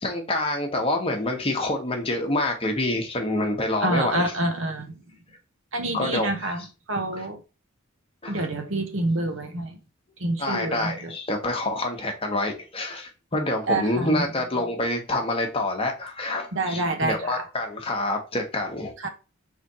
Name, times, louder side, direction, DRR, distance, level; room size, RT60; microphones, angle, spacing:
voice 1, 0.0-4.3 5.9-6.3 8.2-8.5 10.4-18.9, left 2 dB, 25° left, 1.1 m, -27 dB
voice 2, 3.8-4.9 5.7-6.6 6.9-7.4 8.3-9.8 10.2-11.1 13.7-14.2 16.5-17.4 19.0-19.1, right 2 dB, 65° right, 1.0 m, -27 dB
3.7 x 3.3 x 4.2 m
head